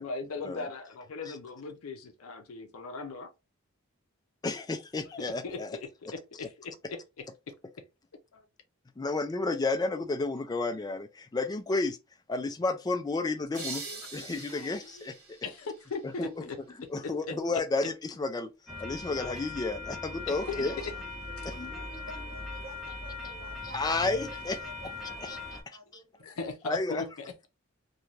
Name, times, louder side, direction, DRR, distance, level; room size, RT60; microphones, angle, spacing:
voice 1, 0.0-3.3 5.4-7.2 8.3-8.4 13.9-14.7 15.0-15.1 15.4-16.6 17.0-17.3 20.3-20.9 26.2-27.5, left 4 dB, 75° left, 0.5 m, -39 dB
voice 2, 4.4-5.8 9.0-12.0 12.3-13.8 14.1-15.2 16.2-16.3 16.9-18.5 18.8-20.8 21.5-21.7 23.7-24.6 25.2-25.4 26.6-27.0, left 3 dB, 20° left, 0.3 m, -31 dB
sound 1, 13.5-16.3, right 4 dB, 85° right, 0.9 m, -43 dB
sound 2, 18.7-25.6, left 2 dB, ahead, 0.9 m, -40 dB
voice 3, 20.3-21.0 21.2-26.3, right 1 dB, 45° right, 1.0 m, -50 dB
2.5 x 2.2 x 3.1 m
head